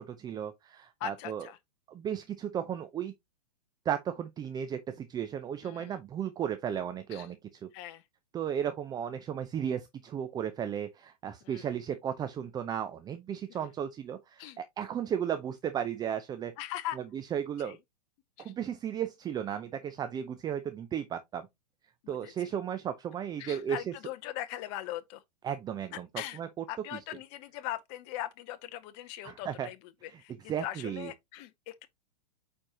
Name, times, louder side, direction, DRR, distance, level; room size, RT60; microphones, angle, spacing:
voice 1, 0.0-1.5 1.9-3.1 3.8-7.4 7.6-7.7 8.3-16.5 17.0-17.8 18.4-21.5 22.1-23.9 25.4-26.1 26.4-26.6 29.2-29.7 30.1-30.2 30.5-31.1, right 9 dB, 20° right, 0.6 m, -35 dB
voice 2, 1.0-1.6 5.6-6.0 7.1-7.3 7.7-8.0 11.4-11.7 13.6-13.7 14.4-14.6 16.6-17.0 17.6-17.8 18.4-18.6 22.0-22.5 23.4-25.2 26.2-26.4 26.7-29.8 30.0-31.9, left 13 dB, 40° left, 0.6 m, -40 dB
8.8 x 4.4 x 2.8 m
hypercardioid pair, 115°, 21 cm